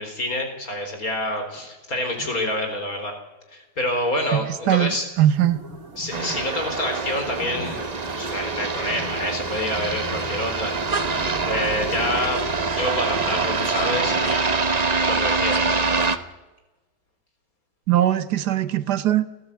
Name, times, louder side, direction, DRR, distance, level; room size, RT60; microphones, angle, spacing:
voice 1, 0.0-3.1 3.5-5.0 6.0-7.8 8.1-11.1 11.5-12.4 12.7-14.6 15.0-15.8, left 1 dB, 55° left, 5 dB, 4.5 m, -27 dB
voice 2, 4.7-5.6 17.9-19.2, right 12 dB, 70° right, 14 dB, 1.5 m, -20 dB
sound 1, 5.2-14.4, right 3 dB, 55° right, 3.0 m, -37 dB
sound 2, 6.1-16.2, right 4 dB, 30° right, 0.8 m, -25 dB
28.0 x 15.0 x 8.5 m, 1.1 s
omnidirectional pair, 1.9 m